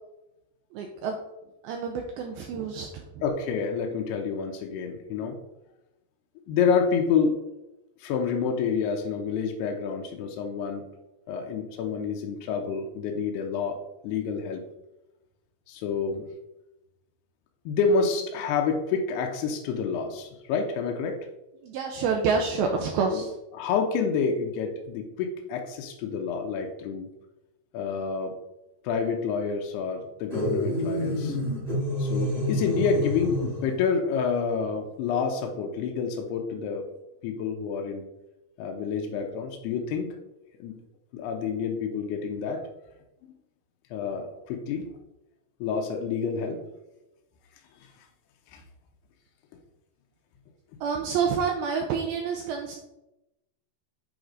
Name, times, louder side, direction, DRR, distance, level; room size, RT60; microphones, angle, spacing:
voice 1, 0.7-1.2 1.6-3.2 21.6-23.3 50.8-52.8, right 5 dB, 80° right, 2 dB, 2.2 m, -28 dB
voice 2, 3.2-5.4 6.5-7.4 8.0-10.9 11.3-14.6 15.7-16.3 17.7-21.2 23.1-23.2 23.5-27.1 27.7-28.4 28.8-31.4 32.0-36.9 37.2-38.1 38.6-40.2 40.6-40.8 41.1-42.6 43.9-44.9 45.6-46.6 48.5-48.6, left 5 dB, 80° left, 2 dB, 2.7 m, -28 dB
sound 1, 30.3-33.8, left 1 dB, 20° right, 1.0 m, -28 dB
8.0 x 4.8 x 3.8 m, 0.94 s
omnidirectional pair, 4.8 m